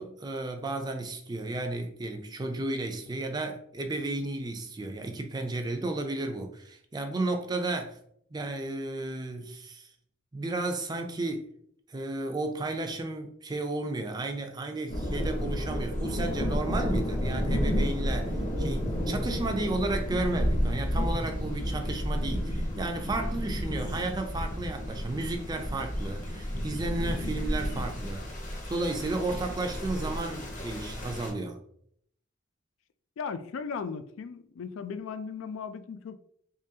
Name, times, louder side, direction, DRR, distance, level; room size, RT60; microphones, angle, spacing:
voice 1, 0.0-8.0 8.3-9.9 10.3-11.5 11.9-28.2 28.7-31.6, right 2 dB, 20° right, 5 dB, 0.4 m, -33 dB
sound 1, 14.9-31.3, equal, 40° left, 0.7 m, -31 dB
voice 2, 33.2-36.2, left 5 dB, 85° left, 11 dB, 0.3 m, -37 dB
3.7 x 3.1 x 2.7 m, 0.67 s
head